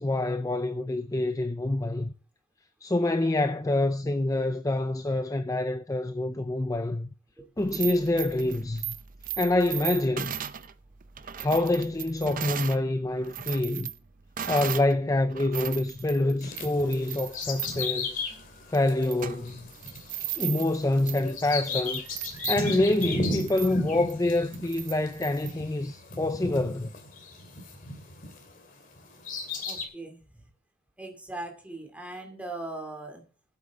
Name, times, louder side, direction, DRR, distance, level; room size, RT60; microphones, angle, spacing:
voice 1, 0.0-2.1 2.8-7.1 7.6-8.9 9.4-10.4 11.4-13.9 14.5-18.2 18.7-19.7 20.4-22.0 22.5-27.0, left 2 dB, 15° left, 0.5 m, -26 dB
sound 1, 7.6-12.8 13.2-14.9 15.3-25.5, right 10 dB, 40° right, 0.6 m, -37 dB
Bird vocalization bird call bird song, 16.4-28.5 29.0-29.9, left 2 dB, 40° left, 2.6 m, -35 dB
voice 2, 29.6-30.4 31.0-33.2, right 2 dB, 5° right, 2.5 m, -39 dB
15.5 x 8.3 x 3.6 m
head